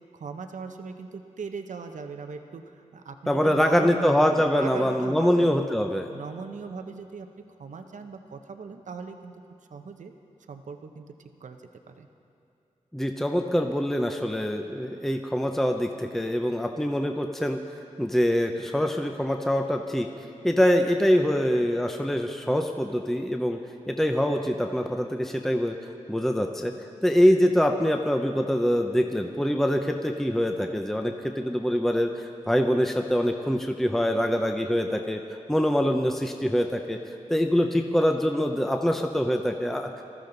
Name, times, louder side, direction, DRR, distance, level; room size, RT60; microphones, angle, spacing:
voice 1, 0.1-4.1 4.5-5.7 6.1-7.3 7.6-9.3 9.7-10.1 10.5-11.1 11.4-11.6 11.9-12.1, right 5 dB, 75° right, 6 dB, 0.8 m, -39 dB
voice 2, 3.3-6.1 12.9-17.6 18.0-20.1 20.4-23.6 23.9-25.7 26.1-26.7 27.0-35.2 35.5-37.0 37.3-39.9, equal, 5° left, 4 dB, 0.6 m, -24 dB
20.0 x 13.5 x 3.9 m, 2.7 s
wide cardioid pair, 95°, 13 cm